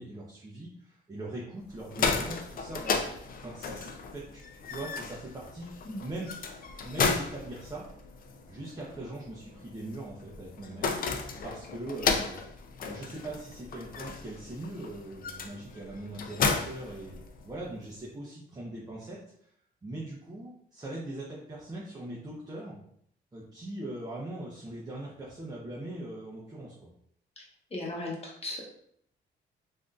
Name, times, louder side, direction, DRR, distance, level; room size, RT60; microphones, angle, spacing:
voice 1, 0.0-5.7 6.0-6.4 6.8-7.8 8.5-12.4 12.9-17.2 17.4-19.5 19.8-22.8 23.3-26.7, right 1 dB, 20° right, -5 dB, 0.7 m, -41 dB
sound 1, 1.7-17.7, left 5 dB, 45° left, 0.4 m, -34 dB
voice 2, 27.4-28.6, left 2 dB, 30° left, -3 dB, 1.1 m, -37 dB
3.4 x 2.6 x 2.3 m, 0.68 s
cardioid pair, 90°, 20 cm